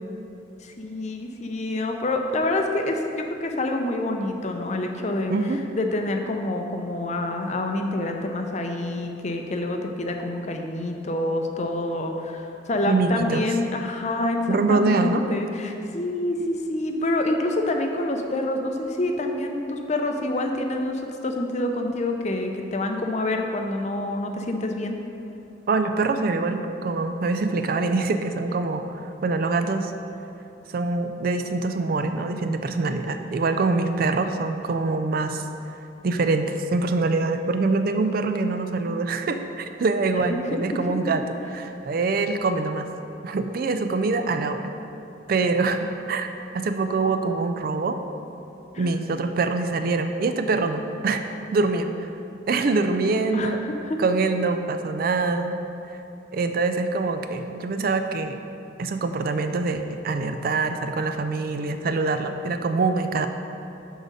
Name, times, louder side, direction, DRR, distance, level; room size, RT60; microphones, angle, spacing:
voice 1, 0.6-5.3 5.7-14.4 14.7-25.0 48.7-48.9 53.3-54.0, left 2 dB, 35° left, 4 dB, 0.6 m, -27 dB
voice 2, 5.3-5.6 12.9-13.4 14.5-15.2 25.7-28.8 29.2-29.9 30.7-35.4 36.0-42.9 43.2-44.7 45.3-46.3 46.5-48.0 48.8-51.2 51.5-52.1 52.5-53.6 54.0-55.6 55.9-56.0 56.3-58.4 58.8-63.3, right 3 dB, 50° right, 8 dB, 0.4 m, -24 dB
6.4 x 5.0 x 6.4 m, 2.8 s
head